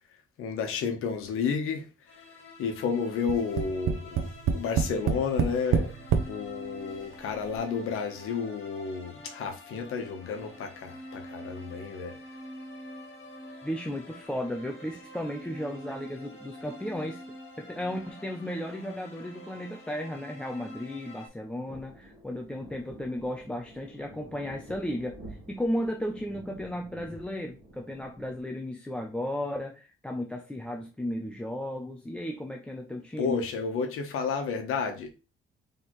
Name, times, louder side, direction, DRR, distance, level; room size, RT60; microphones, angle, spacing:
voice 1, 0.4-1.9 2.6-6.0 6.2-12.1 33.2-35.1, left 5 dB, 85° left, 1.0 m, -31 dB
sound 1, 2.1-21.3, left 1 dB, 70° left, 1.5 m, -46 dB
Tap, 3.3-6.3 7.1-7.2 7.5-7.6, right 7 dB, 75° right, 0.6 m, -26 dB
voice 2, 13.6-17.2 17.6-33.4, left 1 dB, 5° left, 0.3 m, -34 dB
sound 2, 21.6-28.4, right 1 dB, 15° right, 1.8 m, -49 dB
4.4 x 3.4 x 3.0 m
cardioid pair, 180°, 21 cm